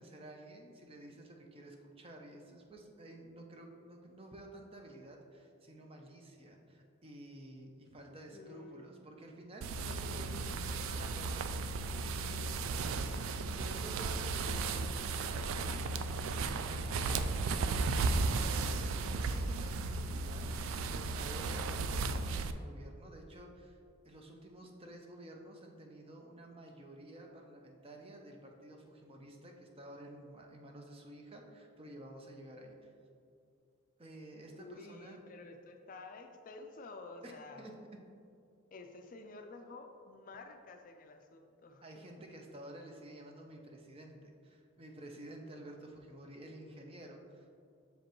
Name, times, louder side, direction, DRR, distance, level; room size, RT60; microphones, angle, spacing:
voice 1, 0.0-10.8 11.8-12.4 13.0-17.6 18.4-18.7 18.9-20.5 20.7-23.8 24.0-32.9 34.0-35.2 37.2-37.3 37.6-37.7 41.8-47.5, right 1 dB, 25° right, 2 dB, 0.6 m, -51 dB
voice 2, 8.3-9.1 10.6-11.7 34.5-37.7 38.7-41.8, left 3 dB, 40° left, 5 dB, 0.4 m, -51 dB
sound 1, 9.6-22.5, right 3 dB, 75° right, 0.3 m, -35 dB
6.6 x 5.1 x 3.0 m, 2.4 s
head